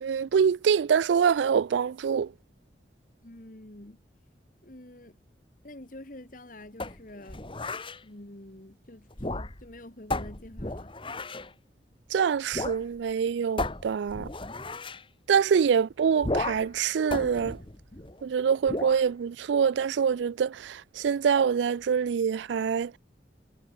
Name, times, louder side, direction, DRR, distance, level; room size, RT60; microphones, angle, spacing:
voice 1, 0.0-2.3 12.1-14.3 15.3-17.6 18.2-22.9, right 7 dB, 80° right, 0.3 m, -25 dB
voice 2, 3.2-4.0 4.6-5.2 5.6-7.4 8.0-10.9, left 1 dB, 45° left, 2.0 m, -47 dB
sound 1, 6.8-8.0 9.1-9.7 10.1-11.5 12.5-12.8 13.1-13.2 13.6-15.0 16.2-16.8 17.1-18.2 18.7-19.0, left 2 dB, 30° left, 1.6 m, -34 dB
head